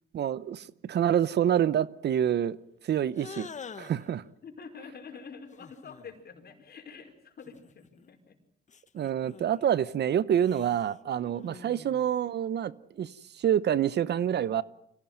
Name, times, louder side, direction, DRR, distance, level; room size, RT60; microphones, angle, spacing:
voice 1, 0.1-2.6 2.8-3.5 3.8-4.2 8.9-14.6, right 9 dB, 60° right, 0.8 m, -27 dB
sound 1, 3.1-4.1 5.5-6.2 7.4-8.2 8.7-9.7 10.4-12.2, left 6 dB, 40° left, 1.2 m, -47 dB
voice 2, 4.4-8.4, left 5 dB, 55° left, 4.9 m, -47 dB
25.0 x 17.0 x 9.2 m
cardioid pair, 90°, 20 cm